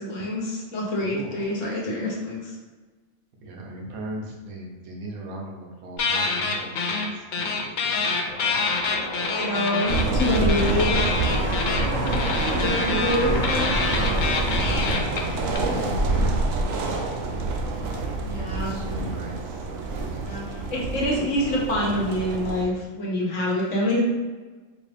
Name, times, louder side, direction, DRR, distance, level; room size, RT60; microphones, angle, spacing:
voice 1, 0.0-2.5 9.3-11.1 12.5-13.7 18.2-18.8 20.2-20.4 20.7-24.0, left 1 dB, 60° left, -3 dB, 1.3 m, -26 dB
voice 2, 1.0-1.5 3.4-8.6 11.9-13.4 13.9-17.3 18.3-20.4 20.6-22.1, right 1 dB, 90° right, -1 dB, 1.3 m, -38 dB
sound 1, 6.0-7.1 7.3-15.6, left 4 dB, 80° left, 0.4 m, -26 dB
sound 2, 8.3-15.0, left 1 dB, 25° left, 0.7 m, -32 dB
sound 3, 9.9-22.6, right 2 dB, 75° right, 0.9 m, -27 dB
4.6 x 2.5 x 3.4 m, 1.3 s
omnidirectional pair, 1.5 m